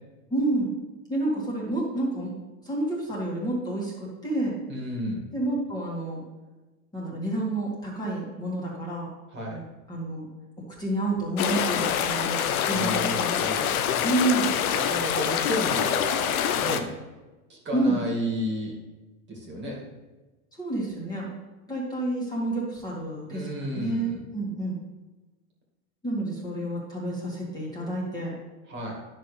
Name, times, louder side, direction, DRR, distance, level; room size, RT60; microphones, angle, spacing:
voice 1, 0.3-0.7 1.1-2.3 2.6-4.6 5.3-6.2 6.9-9.1 9.5-9.6 9.9-10.3 10.8-13.7 14.0-14.5 17.7-18.0 20.6-21.3 21.7-24.8 26.0-28.3, right 2 dB, 10° left, -5 dB, 2.1 m, -29 dB
voice 2, 4.7-5.2 9.3-9.6 12.7-13.9 14.7-16.9 17.5-18.8 19.3-19.8 23.3-24.2 28.7-28.9, equal, 25° right, -2 dB, 2.2 m, -32 dB
sound 1, 11.4-16.8, left 9 dB, 80° left, 0.8 m, -25 dB
11.0 x 6.0 x 3.3 m, 1.2 s
supercardioid pair, 130°, 43 cm